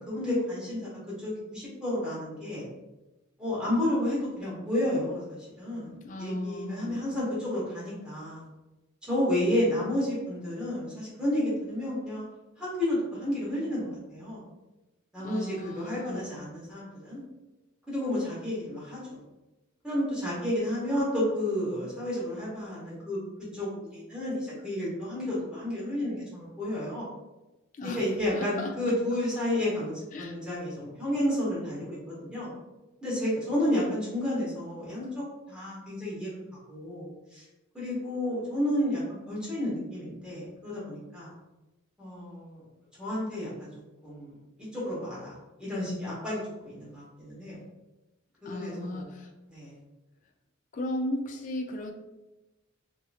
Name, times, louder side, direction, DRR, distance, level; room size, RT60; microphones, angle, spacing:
voice 1, 0.1-0.9 1.2-2.7 3.4-5.9 6.2-8.4 9.1-12.2 12.6-14.4 15.1-17.2 17.9-19.2 19.8-23.2 23.5-27.1 27.8-32.5 33.0-36.4 36.7-37.4 37.7-39.0 39.3-41.3 42.0-42.6 43.0-43.7 44.0-44.3 44.6-47.6 48.4-49.1 49.5-49.7, left 1 dB, 5° right, -9 dB, 1.1 m, -31 dB
voice 2, 6.0-7.0 15.2-16.3 27.8-28.0 28.3-28.7 30.1-30.4 48.4-49.3 50.7-51.9, left 1 dB, 35° left, 3 dB, 0.3 m, -35 dB
2.8 x 2.7 x 2.4 m, 1.0 s
head